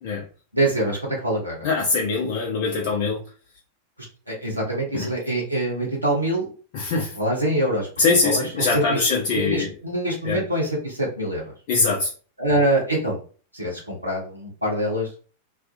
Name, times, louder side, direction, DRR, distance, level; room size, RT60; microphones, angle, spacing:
voice 1, 0.5-1.7 4.3-6.5 6.9-9.0 9.3-11.5 12.4-13.2 13.5-15.1, right 1 dB, 85° right, -3 dB, 0.8 m, -25 dB
voice 2, 1.6-3.2 4.9-5.1 6.7-7.1 8.0-9.7 10.2-10.4 11.7-12.1, left 4 dB, 50° left, -1 dB, 0.5 m, -22 dB
2.4 x 2.3 x 2.6 m, 0.37 s
figure-of-eight pair, 90°, 0 cm